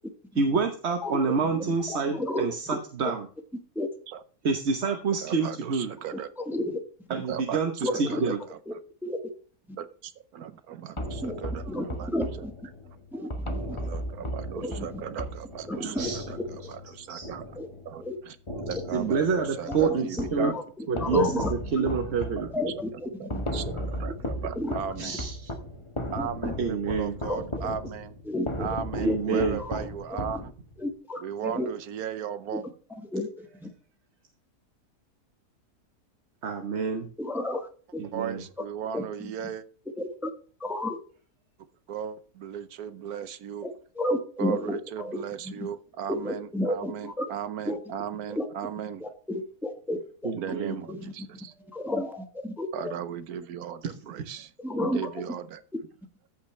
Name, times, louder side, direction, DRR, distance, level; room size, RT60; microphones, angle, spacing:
voice 1, 0.4-3.3 4.4-5.9 7.1-8.4 15.8-16.2 17.1-17.3 18.9-20.5 20.9-21.4 21.7-22.5 23.7-23.9 25.0-25.5 26.6-27.2 28.9-29.6 36.4-37.0 38.0-38.4 50.2-50.8 54.2-54.3, right 5 dB, 50° right, 5 dB, 1.2 m, -27 dB
voice 2, 1.3-1.8 4.1-4.2 5.2-6.3 7.1-8.8 9.8-12.1 12.4-12.5 12.8-16.4 16.7-17.6 17.8-20.6 22.1-22.5 22.7-22.8 23.2-25.3 26.1-28.2 28.6-30.5 31.2-32.6 38.1-39.6 41.9-43.7 44.4-49.0 50.3-51.5 52.7-54.5 54.8-55.6, right 8 dB, 75° right, 13 dB, 1.2 m, -37 dB
voice 3, 1.9-2.8 3.7-3.9 6.4-6.8 7.8-8.3 9.0-9.2 11.2-11.3 11.7-12.5 13.1-13.6 14.6-15.0 15.7-16.1 17.6-17.7 18.0-18.2 18.7-19.1 19.7-21.5 21.8-21.9 22.5-23.4 24.6-24.7 26.2-26.3 27.3-27.8 28.2-28.7 29.0-29.9 30.8-31.7 32.5-32.6 33.1-33.7 37.2-37.6 37.9-38.0 38.9-39.3 40.0-40.3 40.6-41.0 43.6-45.2 45.5-45.7 46.1-47.2 47.6-47.8 48.4-48.5 49.0-50.6 50.9-51.0 51.7-52.7 54.6-55.0, left 1 dB, ahead, 5 dB, 1.1 m, -32 dB
sound 1, 11.0-18.1 18.5-20.5 21.0-30.9, left 1 dB, 20° left, 1.0 m, -36 dB
14.5 x 5.7 x 3.2 m, 0.42 s
omnidirectional pair, 1.7 m